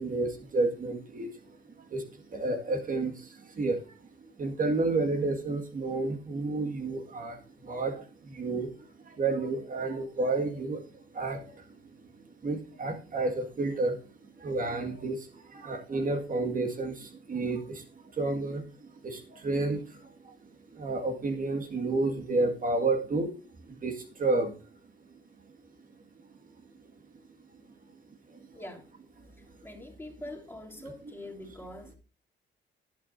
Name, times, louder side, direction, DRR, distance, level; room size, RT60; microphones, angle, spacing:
voice 1, 0.0-1.4 1.9-11.8 12.1-14.0 14.4-17.8 18.1-20.4 20.7-23.3 23.7-24.6 28.3-28.4, right 3 dB, 45° right, 3 dB, 2.0 m, -31 dB
voice 2, 28.5-28.8 29.6-32.0, left 1 dB, 10° left, 0 dB, 3.0 m, -43 dB
18.5 x 8.4 x 2.7 m, 0.35 s
cardioid pair, 90°, 20 cm